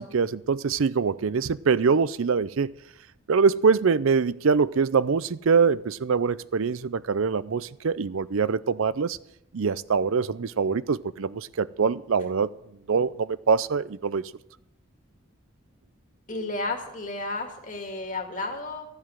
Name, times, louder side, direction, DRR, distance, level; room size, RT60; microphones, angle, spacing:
voice 1, 0.0-2.7 3.3-9.2 9.5-12.5 12.9-14.3, right 5 dB, 70° right, 0.5 m, -24 dB
voice 2, 16.3-18.9, left 2 dB, 35° left, 2.2 m, -32 dB
14.5 x 7.9 x 7.4 m
head